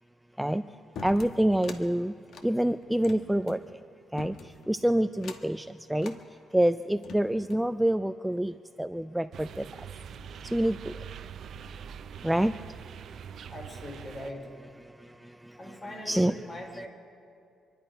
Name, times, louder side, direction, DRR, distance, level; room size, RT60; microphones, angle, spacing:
sound 1, 1.0-1.8 2.3-3.6 4.2-4.7 5.2-5.6 6.0-6.2 6.8-7.7, left 4 dB, 70° left, 1.2 m, -44 dB
voice 1, 1.0-2.1 2.4-3.6 4.1-4.3 4.7-6.1 6.5-8.5 8.8-9.5 10.5-10.7 12.2-12.5 16.1-16.3, right 1 dB, 5° right, 11 dB, 0.3 m, -26 dB
sound 2, 9.3-14.3, right 8 dB, 65° right, 0.5 m, -43 dB
voice 2, 13.5-14.5 15.6-16.9, left 1 dB, 35° left, 2 dB, 4.0 m, -41 dB
26.0 x 11.0 x 5.1 m, 2.5 s
cardioid pair, 90°, 0 cm